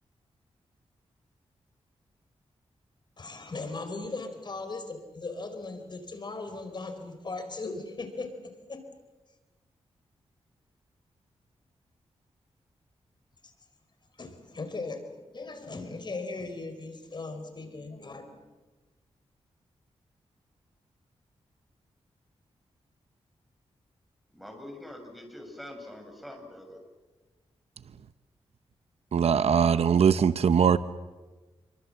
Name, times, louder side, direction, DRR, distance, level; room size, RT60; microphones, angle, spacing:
voice 1, 3.2-8.9 13.4-13.5 14.2-18.4, left 3 dB, 45° left, 4.5 m, -38 dB
voice 2, 24.3-26.8, left 1 dB, ahead, 7.4 m, -44 dB
voice 3, 29.1-30.8, right 7 dB, 70° right, 1.0 m, -21 dB
28.5 x 24.5 x 7.8 m
cardioid pair, 80°, 11 cm